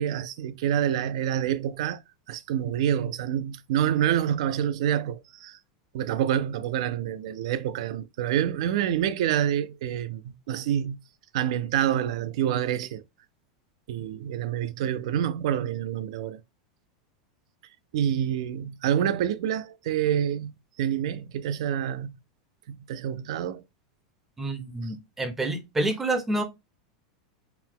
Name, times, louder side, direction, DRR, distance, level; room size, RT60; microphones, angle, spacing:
voice 1, 0.0-2.0 2.3-5.6 5.9-11.0 11.3-13.0 13.9-16.4 17.9-22.1 22.7-23.6, right 10 dB, 60° right, 0.4 m, -27 dB
voice 2, 24.4-26.4, right 2 dB, 5° right, 0.5 m, -28 dB
4.5 x 2.2 x 3.7 m
supercardioid pair, 175°, 4 cm